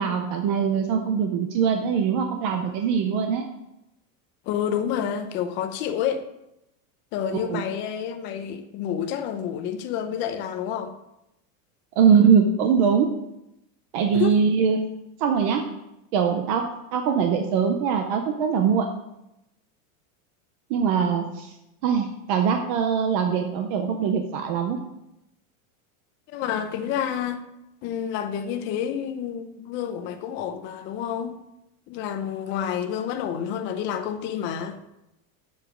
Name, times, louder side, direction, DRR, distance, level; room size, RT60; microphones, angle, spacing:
voice 1, 0.0-3.5 7.3-7.6 12.0-13.1 13.9-14.8 15.2-15.6 16.1-16.6 16.9-18.9 20.7-21.5 21.8-24.8, right 7 dB, 25° right, 0.4 m, -22 dB
voice 2, 4.5-6.2 7.1-10.9 14.1-14.4 26.3-27.4 27.8-31.4 31.9-34.8, left 9 dB, 25° left, 0.7 m, -29 dB
7.7 x 7.0 x 6.2 m
supercardioid pair, 175°, 42 cm